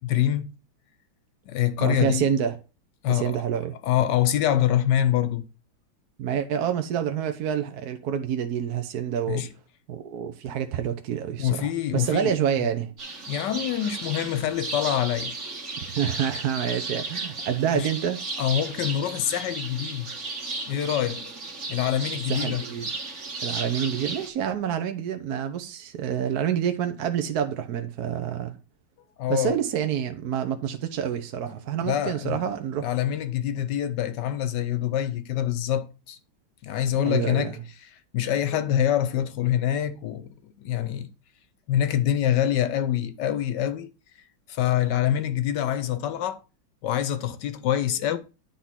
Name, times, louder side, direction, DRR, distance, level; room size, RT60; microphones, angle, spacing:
voice 1, 0.0-0.5 1.5-2.3 3.0-3.3 3.8-5.5 9.3-9.5 11.4-12.4 13.3-15.3 17.7-17.9 18.4-20.1 20.7-21.2 21.7-22.6 29.2-29.5 31.8-32.4 32.8-36.2 36.6-37.6 38.1-41.1 41.7-43.9 44.5-46.4 46.8-48.2, left 11 dB, 70° left, 1.2 m, -25 dB
voice 2, 1.8-2.6 3.1-3.8 6.2-9.4 9.9-12.9 15.8-18.2 22.3-22.9 23.4-28.6 29.3-32.9 37.0-37.6, right 9 dB, 65° right, 1.1 m, -27 dB
sound 1, 13.0-24.3, right 3 dB, 40° right, 1.6 m, -35 dB
10.0 x 3.6 x 5.7 m
omnidirectional pair, 2.1 m